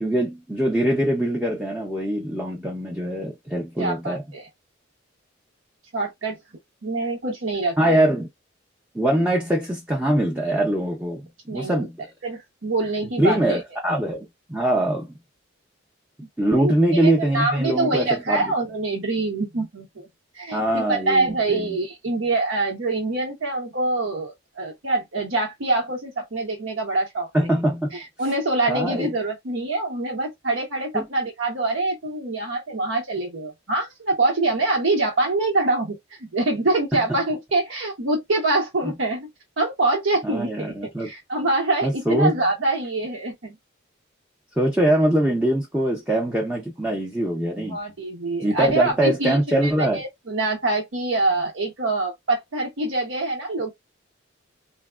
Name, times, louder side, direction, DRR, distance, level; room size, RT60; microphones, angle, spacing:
voice 1, 0.0-4.2 7.8-8.3 8.9-11.2 11.5-12.1 13.2-15.1 16.4-18.5 20.5-21.8 27.3-28.0 28.7-29.1 30.9-31.1 40.2-41.1 41.8-42.3 44.6-47.8 48.4-50.0, right 1 dB, 5° right, 0.5 m, -23 dB
voice 2, 3.8-4.5 5.9-6.4 6.8-8.0 11.5-11.9 12.2-13.6 16.5-20.1 20.3-27.5 27.9-36.0 36.3-39.3 39.6-43.6 47.7-53.7, right 2 dB, 75° right, 0.9 m, -25 dB
3.4 x 2.1 x 2.3 m
head